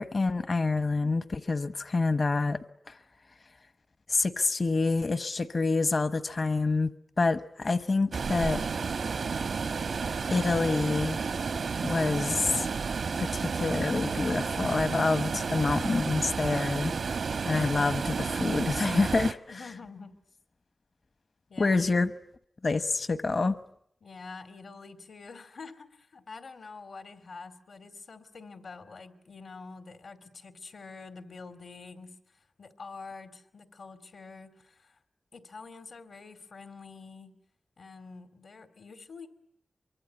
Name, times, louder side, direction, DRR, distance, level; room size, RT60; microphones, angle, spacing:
voice 1, 0.0-2.6 2.9-3.0 4.1-6.9 7.2-8.6 10.3-11.2 11.8-12.7 13.2-17.2 17.4-19.4 21.6-22.1 22.6-23.6, left 3 dB, 50° left, 13 dB, 1.1 m, -27 dB
sound 1, 8.1-19.3, right 5 dB, 85° right, 1.1 m, -31 dB
voice 2, 19.5-20.2 21.5-21.8 24.0-35.0 35.3-37.3 37.8-39.3, left 4 dB, 75° left, 10 dB, 2.6 m, -46 dB
24.0 x 24.0 x 9.4 m, 0.68 s
wide cardioid pair, 110°, 0 cm